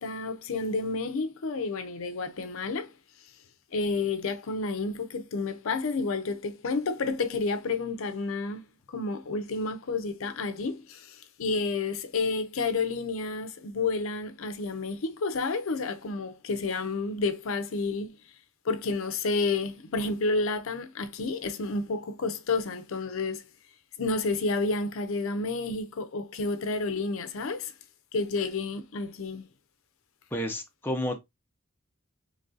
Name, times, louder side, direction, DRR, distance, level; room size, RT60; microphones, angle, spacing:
voice 1, 0.0-2.9 3.7-18.1 18.6-23.4 24.0-27.7 28.1-29.5, left 3 dB, 70° left, 0.5 m, -30 dB
voice 2, 30.3-31.2, equal, 10° left, 0.5 m, -31 dB
3.1 x 2.6 x 3.7 m
head